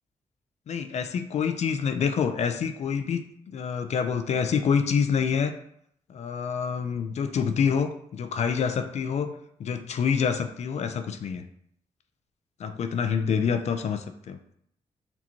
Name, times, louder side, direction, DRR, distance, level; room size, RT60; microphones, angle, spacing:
voice 1, 0.7-3.2 3.5-5.5 6.1-9.3 9.6-11.5 12.6-14.4, left 6 dB, 60° left, 8 dB, 0.4 m, -27 dB
4.2 x 2.8 x 2.9 m, 0.70 s
cardioid pair, 70°, 13 cm